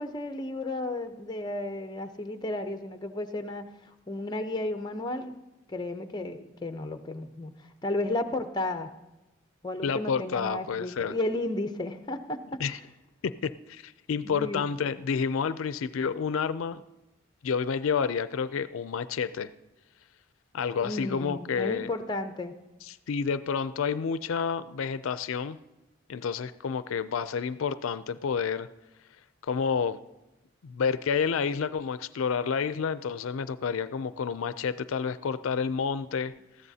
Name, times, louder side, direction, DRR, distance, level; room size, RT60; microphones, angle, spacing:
voice 1, 0.0-3.6 4.1-5.3 5.7-8.9 9.6-12.6 14.2-14.7 20.8-22.6, left 2 dB, 20° left, 7 dB, 0.6 m, -33 dB
voice 2, 9.8-11.1 12.6-12.8 13.2-16.8 17.4-19.5 20.5-21.9 22.8-25.6 26.1-28.7 29.5-30.0 30.6-36.3, left 6 dB, 75° left, 14 dB, 0.4 m, -29 dB
19.5 x 14.5 x 2.8 m, 1.0 s
head